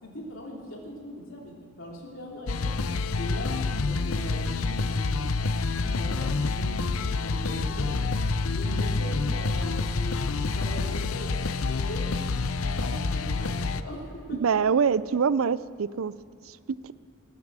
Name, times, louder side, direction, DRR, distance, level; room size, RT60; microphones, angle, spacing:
voice 1, 0.0-2.7 3.1-8.2 8.5-12.1 12.6-14.6, equal, 65° left, -1 dB, 3.3 m, -40 dB
sound 1, 2.5-13.8, left 3 dB, 85° left, 0.6 m, -28 dB
voice 2, 14.3-16.1 16.5-16.6 16.8-16.9, right 6 dB, 75° right, 17 dB, 0.5 m, -24 dB
18.5 x 9.6 x 7.5 m, 2.4 s
head